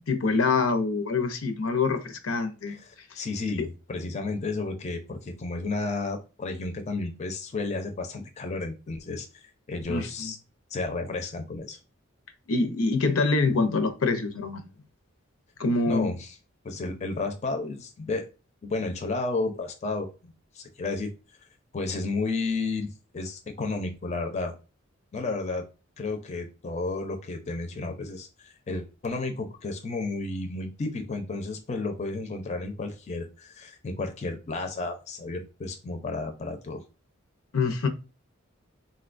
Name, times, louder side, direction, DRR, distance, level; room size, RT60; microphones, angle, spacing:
voice 1, 0.1-2.8 3.1-3.2 3.6-3.7 9.9-10.3 12.5-14.7 15.6-16.1 37.5-37.9, left 3 dB, 90° left, 0.6 m, -25 dB
voice 2, 3.2-10.4 10.7-11.8 15.9-16.4 16.6-18.3 18.6-21.1 21.7-24.5 25.1-25.6 26.0-36.8, left 3 dB, 35° left, 0.4 m, -32 dB
3.8 x 2.2 x 2.4 m
head